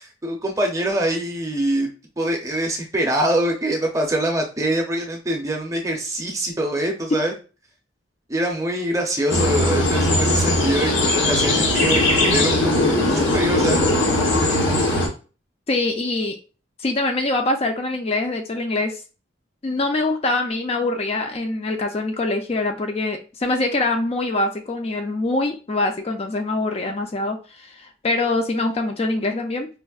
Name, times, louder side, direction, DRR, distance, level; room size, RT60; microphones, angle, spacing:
voice 1, 0.0-1.9 2.2-7.3 8.3-12.7 13.1-13.8, right 1 dB, 15° right, 1 dB, 0.6 m, -24 dB
sound 1, 9.3-15.1, left 2 dB, 90° left, 1.0 m, -19 dB
voice 2, 15.7-16.4 16.8-19.0 19.6-29.7, left 2 dB, 35° left, 4 dB, 0.4 m, -24 dB
5.1 x 2.0 x 2.3 m, 0.34 s
head